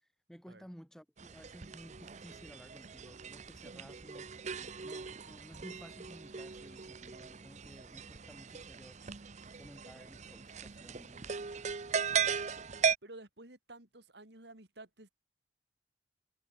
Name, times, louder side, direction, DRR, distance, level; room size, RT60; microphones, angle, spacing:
voice 1, 0.3-4.3 4.8-9.0 9.6-11.4 12.0-12.5, equal, 5° left, 6.2 m, -55 dB
sound 1, 1.2-13.0, right 6 dB, 40° right, 0.7 m, -38 dB
voice 2, 13.0-15.1, right 2 dB, 65° right, 4.6 m, -53 dB
head